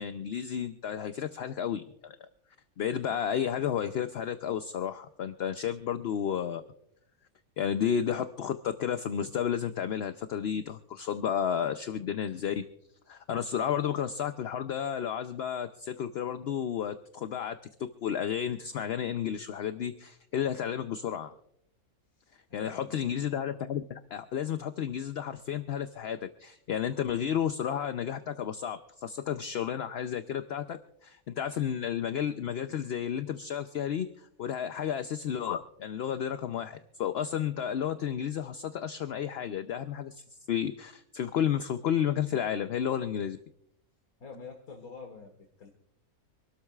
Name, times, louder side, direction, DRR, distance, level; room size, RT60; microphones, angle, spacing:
voice 1, 0.0-2.2 2.8-6.6 7.6-12.6 13.1-21.3 22.5-43.4, left 9 dB, 60° left, 9 dB, 0.7 m, -32 dB
voice 2, 22.2-23.0 44.2-45.7, left 5 dB, 85° left, 3 dB, 1.9 m, -47 dB
26.0 x 13.0 x 2.4 m, 0.74 s
omnidirectional pair, 1.5 m